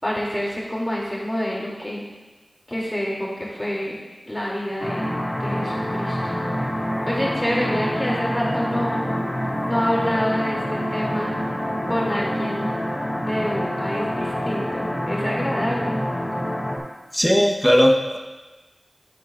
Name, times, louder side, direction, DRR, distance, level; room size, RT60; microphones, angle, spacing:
voice 1, 0.0-2.0 2.7-4.0 4.3-5.1 5.4-6.3 7.1-9.1 9.6-11.4 11.9-12.7 13.2-15.9, equal, 20° left, -4 dB, 3.1 m, -27 dB
sound 1, 4.8-16.8, equal, 40° left, 2.1 m, -26 dB
voice 2, 17.1-18.2, equal, ahead, 0 dB, 1.2 m, -18 dB
13.0 x 7.8 x 2.6 m, 1.2 s
cardioid pair, 40°, 0 cm